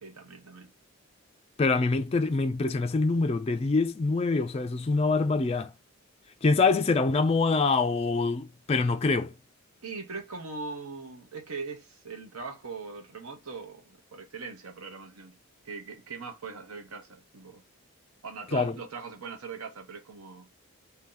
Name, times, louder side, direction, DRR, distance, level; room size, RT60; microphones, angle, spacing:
voice 1, 0.0-0.7 9.8-15.4 15.6-17.6 18.2-20.5, right 4 dB, 85° right, 1.0 m, -41 dB
voice 2, 1.6-5.7 6.4-9.3 18.5-18.7, left 3 dB, 25° left, 0.3 m, -25 dB
2.8 x 2.8 x 3.8 m
head